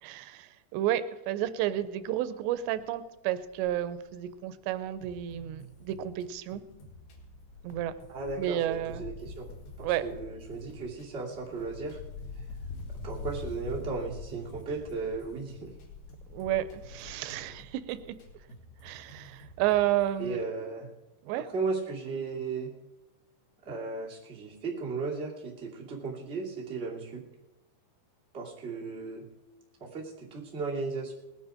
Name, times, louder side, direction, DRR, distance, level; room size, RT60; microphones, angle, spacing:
voice 1, 0.0-6.6 7.6-8.0 8.4-9.0 9.8-10.0 16.3-18.0 18.8-20.4 21.2-21.5, right 12 dB, 90° right, 13 dB, 2.9 m, -31 dB
Wind, 1.5-1.8 2.1-2.2 2.5-6.1 6.4-18.5 18.8-18.9, left 4 dB, 80° left, 3.5 m, -45 dB
sound 1, 5.0-13.4 13.7-20.3, right 1 dB, 65° left, 4.0 m, -53 dB
voice 2, 8.1-9.5 9.8-12.0 13.0-15.7 20.2-20.9 21.3-22.7 23.6-27.2 28.3-29.2 29.8-31.1, right 4 dB, 20° right, -4 dB, 2.1 m, -35 dB
19.0 x 10.0 x 5.0 m, 1.0 s
omnidirectional pair, 4.9 m